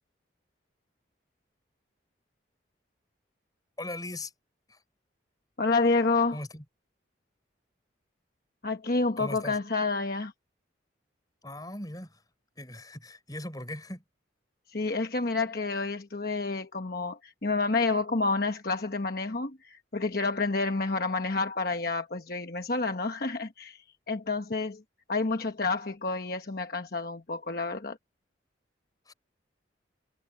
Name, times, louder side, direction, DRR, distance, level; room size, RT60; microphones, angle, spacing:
voice 1, 3.8-4.3 4.7-4.8 6.3-6.6 9.2-9.6 11.4-12.2 12.6-14.0 29.1-29.2, left 1 dB, 20° left, 6.5 m, -39 dB
voice 2, 5.6-6.4 8.6-10.3 14.7-24.8 25.1-28.0, left 3 dB, 50° left, 1.1 m, -29 dB
head